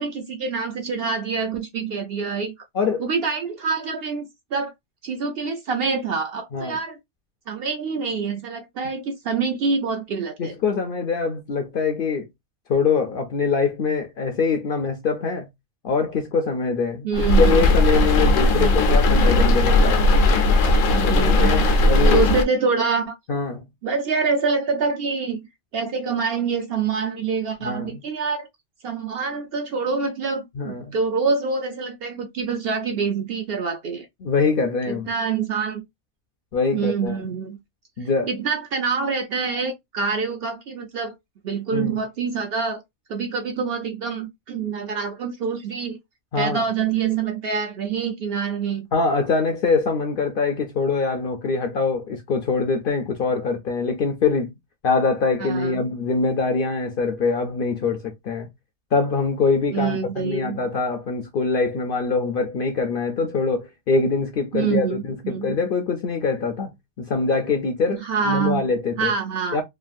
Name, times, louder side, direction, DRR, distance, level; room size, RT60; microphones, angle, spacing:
voice 1, 0.0-2.5 3.0-4.7 5.0-7.0 7.5-10.5 17.0-17.6 18.6-18.9 20.9-23.2 23.8-25.4 25.7-28.5 28.8-34.1 34.9-35.8 36.7-37.6 38.3-41.1 41.4-42.8 43.1-46.0 46.4-48.9 55.4-55.8 59.7-60.6 64.5-65.5 67.9-68.6 69.0-69.6, right 5 dB, 65° right, 0.6 m, -26 dB
voice 2, 2.7-3.1 6.5-6.8 10.4-12.3 12.7-15.5 15.8-17.1 17.4-20.0 21.0-22.3 23.3-23.6 27.6-28.0 30.5-30.9 34.2-35.1 36.5-37.2 38.0-38.3 41.7-42.0 46.3-46.6 48.9-54.5 54.8-58.5 58.9-69.1 69.5-69.6, left 4 dB, 60° left, 0.6 m, -23 dB
sound 1, 17.1-22.4, left 2 dB, 80° left, 1.0 m, -17 dB
3.1 x 2.4 x 2.4 m
omnidirectional pair, 1.3 m